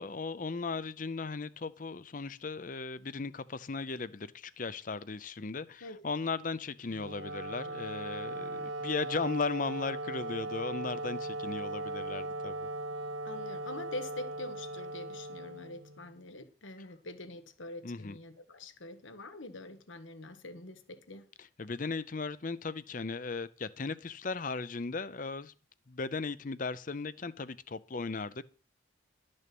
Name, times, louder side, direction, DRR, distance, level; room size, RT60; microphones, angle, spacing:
voice 1, 0.0-12.6 17.8-18.2 21.6-25.5 25.9-28.4, left 4 dB, 45° left, 0.6 m, -37 dB
Wind instrument woodwind instrument, 6.9-16.2, right 2 dB, 80° right, 0.9 m, -38 dB
voice 2, 13.2-21.3, left 2 dB, 80° left, 1.3 m, -45 dB
12.5 x 6.4 x 6.0 m
head